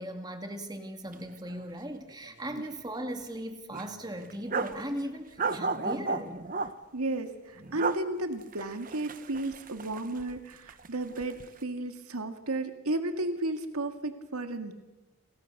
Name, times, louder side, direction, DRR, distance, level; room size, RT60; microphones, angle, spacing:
voice 1, 0.0-6.4, right 1 dB, 20° right, 6 dB, 2.3 m, -38 dB
sound 1, 1.1-1.2 1.5-1.6 2.1-2.7 3.1-3.2 3.7-4.8 5.4-6.7 7.6-8.0 8.4-10.4 10.7-11.4, right 4 dB, 35° right, 1.1 m, -34 dB
voice 2, 6.9-14.7, right 2 dB, 85° right, 7 dB, 2.0 m, -33 dB
30.0 x 23.0 x 6.7 m, 1.1 s
head